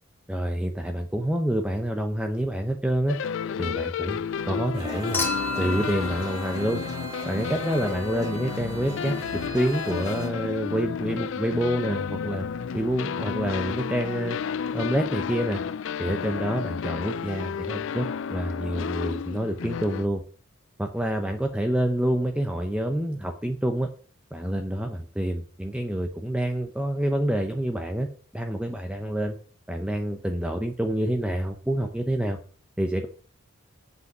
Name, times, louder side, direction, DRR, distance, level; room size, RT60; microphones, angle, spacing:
voice 1, 0.3-3.2 3.6-5.2 5.6-6.8 7.3-9.1 9.5-12.5 12.7-14.4 14.7-15.6 16.0-20.2 20.8-23.9 24.3-28.1 28.3-29.4 29.7-32.4 32.8-33.1, right 1 dB, 5° right, 4 dB, 0.6 m, -27 dB
sound 1, 3.1-20.1, left 7 dB, 60° left, 0.3 m, -32 dB
sound 2, 4.7-10.3, right 1 dB, 20° right, 2.9 m, -39 dB
Human group actions / Chink clink / Liquid, 5.1-7.5 9.0-9.1, left 2 dB, 10° left, 2.4 m, -32 dB
8.4 x 5.4 x 6.6 m, 0.42 s
head